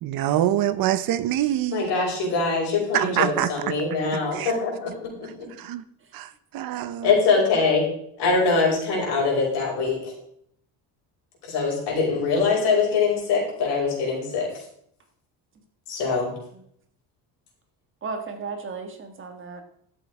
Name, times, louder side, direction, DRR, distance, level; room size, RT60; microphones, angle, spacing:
voice 1, 0.0-1.8 2.9-3.7 4.3-4.5 5.6-5.8 6.1-7.1, right 12 dB, 60° right, 14 dB, 0.8 m, -25 dB
voice 2, 1.7-5.5 7.0-7.8 8.2-10.0 11.4-14.5 15.9-16.3, left 4 dB, 80° left, -2 dB, 5.8 m, -23 dB
voice 3, 4.0-4.7 16.5-16.6 18.0-19.6, right 4 dB, 30° right, 5 dB, 1.6 m, -35 dB
12.5 x 7.9 x 4.8 m, 0.68 s
cardioid pair, 165°, 40 cm